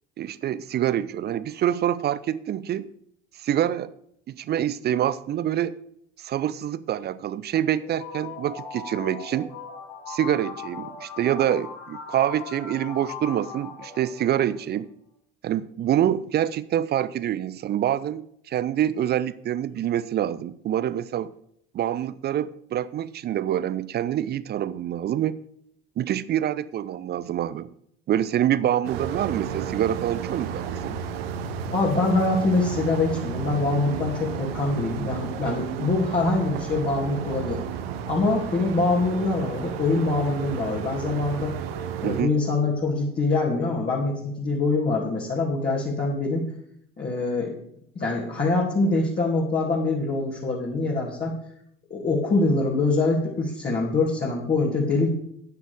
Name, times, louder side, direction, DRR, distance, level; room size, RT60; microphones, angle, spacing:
voice 1, 0.2-2.9 3.3-3.9 4.3-5.8 6.2-9.5 10.1-14.9 15.4-21.3 21.7-25.4 26.0-27.7 28.1-31.0 42.0-42.3, right 11 dB, 30° right, 0.5 m, -26 dB
sound 1, 7.8-14.6, left 5 dB, 45° left, 3.2 m, -39 dB
sound 2, 28.8-42.2, right 7 dB, 65° right, 1.0 m, -33 dB
voice 2, 31.7-37.6 38.1-41.5 42.0-46.5 47.0-47.5 47.9-51.4 51.9-55.1, left 3 dB, 30° left, 2.8 m, -24 dB
13.0 x 9.7 x 3.6 m
figure-of-eight pair, 60°, 32 cm